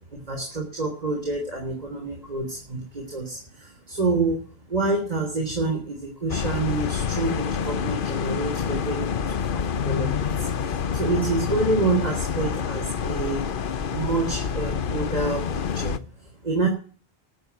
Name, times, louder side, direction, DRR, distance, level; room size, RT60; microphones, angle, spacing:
voice 1, 0.1-4.4 4.7-16.7, right 3 dB, 40° right, 1 dB, 3.6 m, -28 dB
sound 1, 6.3-16.0, left 7 dB, 60° left, 0.9 m, -27 dB
13.0 x 8.0 x 9.3 m, 0.41 s
omnidirectional pair, 1.0 m